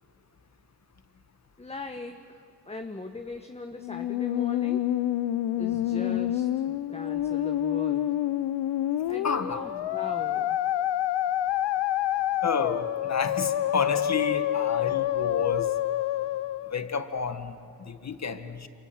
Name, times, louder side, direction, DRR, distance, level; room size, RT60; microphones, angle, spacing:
voice 1, 1.6-4.9 5.6-8.1 9.1-10.6, left 2 dB, 15° left, 6 dB, 1.4 m, -40 dB
Musical instrument, 3.8-16.8, left 12 dB, 85° left, 0.8 m, -27 dB
voice 2, 9.2-9.6 12.4-15.7 16.7-18.7, left 5 dB, 40° left, 10 dB, 1.8 m, -30 dB
29.0 x 25.0 x 7.9 m, 2.7 s
cardioid pair, 75°, 41 cm